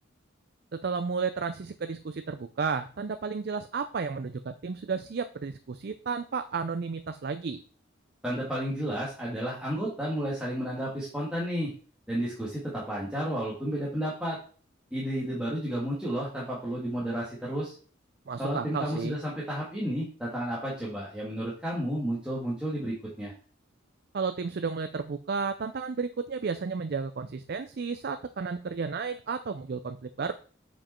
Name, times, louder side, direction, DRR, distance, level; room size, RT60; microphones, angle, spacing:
voice 1, 0.7-7.6 18.3-19.2 24.1-30.3, right 5 dB, 55° right, 9 dB, 0.4 m, -32 dB
voice 2, 8.2-11.7 12.1-14.4 14.9-17.7 18.4-23.3, equal, 5° right, -7 dB, 1.9 m, -32 dB
7.4 x 5.2 x 4.3 m, 0.40 s
head